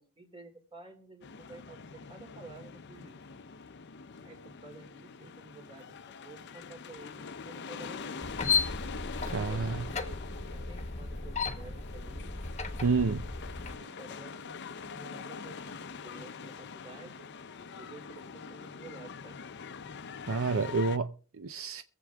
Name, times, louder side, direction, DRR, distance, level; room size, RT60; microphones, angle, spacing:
voice 1, 0.0-3.2 4.2-8.5 9.4-10.2 10.4-12.8 13.7-14.5 14.8-17.3 17.8-19.4, right 3 dB, 25° right, 2.8 m, -52 dB
sound 1, 1.2-21.0, left 5 dB, 55° left, 0.6 m, -44 dB
sound 2, 8.2-13.8, left 5 dB, 30° left, 1.2 m, -34 dB
voice 2, 9.3-9.9 12.8-13.3 20.3-21.8, right 4 dB, 70° right, 0.6 m, -29 dB
23.5 x 7.8 x 3.5 m
head